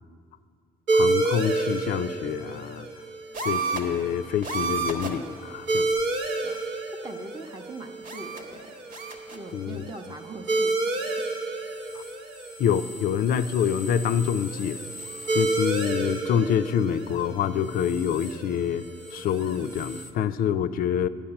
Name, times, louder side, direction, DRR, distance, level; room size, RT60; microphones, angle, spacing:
voice 1, 0.9-2.9 3.5-5.9 9.5-9.9 11.9-12.0 12.6-14.8 15.3-18.8 19.1-21.1, left 8 dB, 60° left, 14 dB, 0.4 m, -26 dB
sound 1, 0.9-20.0, right 2 dB, 85° right, 1.1 m, -31 dB
sound 2, 3.3-4.0 4.4-5.3 5.9-6.0 8.0-8.6 8.9-9.5 11.1-11.3 11.6-16.2 17.7-18.4 18.8-20.1, right 4 dB, 60° right, 1.4 m, -36 dB
voice 2, 6.9-8.8 9.3-11.0, right 2 dB, 25° right, 5 dB, 0.7 m, -41 dB
10.5 x 5.9 x 8.6 m, 2.2 s
cardioid pair, 110°, 17 cm